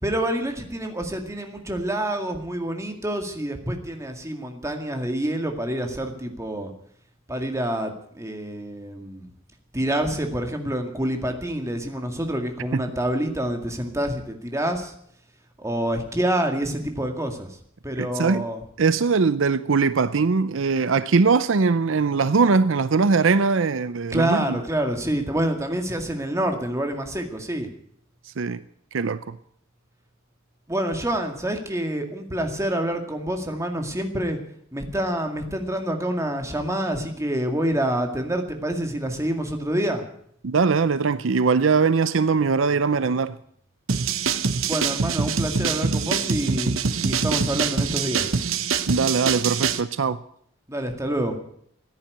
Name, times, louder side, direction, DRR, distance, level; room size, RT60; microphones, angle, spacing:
voice 1, 0.0-6.7 7.3-9.3 9.7-14.9 15.6-17.6 17.8-18.6 24.1-27.7 30.7-34.4 34.7-40.0 44.7-46.8 47.0-48.3 50.7-51.4, right 1 dB, 15° right, 2.1 m, -27 dB
voice 2, 18.0-18.5 18.8-24.6 28.4-28.6 28.9-29.4 40.4-43.4 48.9-50.2, right 4 dB, 70° right, 0.6 m, -21 dB
sound 1, 43.9-49.8, right 5 dB, 85° right, 1.0 m, -24 dB
14.5 x 10.5 x 9.4 m
head